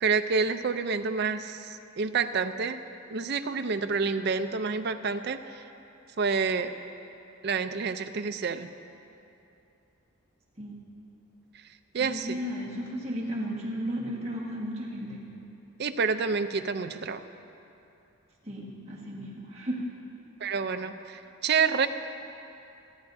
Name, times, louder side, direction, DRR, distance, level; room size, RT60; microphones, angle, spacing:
voice 1, 0.0-2.8 3.1-5.6 6.2-6.7 7.4-8.7 11.9-12.4 15.8-17.2 20.4-21.9, right 5 dB, 50° right, 9 dB, 0.5 m, -28 dB
voice 2, 12.0-15.2 18.4-19.8, equal, 30° right, -4 dB, 1.5 m, -34 dB
29.5 x 10.5 x 2.7 m, 2.8 s
head